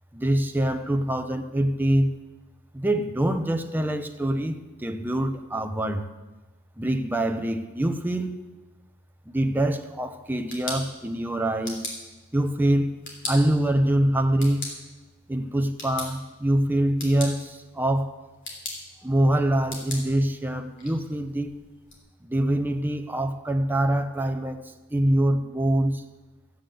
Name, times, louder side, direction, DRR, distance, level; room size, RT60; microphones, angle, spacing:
voice 1, 0.1-2.1 2.7-6.1 6.8-8.4 9.3-11.9 12.3-14.7 15.3-18.1 19.0-21.5 22.2-24.6 24.9-26.0, right 1 dB, 10° right, 0.7 m, -24 dB
sound 1, 10.2-22.0, left 2 dB, 55° left, 3.4 m, -41 dB
13.0 x 8.7 x 7.7 m
head